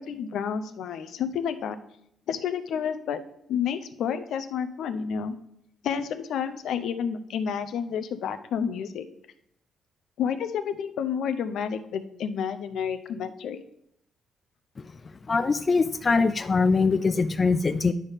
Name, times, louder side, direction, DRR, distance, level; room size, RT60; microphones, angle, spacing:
voice 1, 0.0-1.8 2.3-3.2 3.5-5.4 5.8-9.0 10.2-13.6, left 7 dB, 75° left, 10 dB, 0.6 m, -30 dB
voice 2, 15.3-17.9, left 4 dB, 35° left, 10 dB, 0.4 m, -22 dB
9.9 x 3.5 x 5.6 m, 0.75 s
cardioid pair, 90°, 0 cm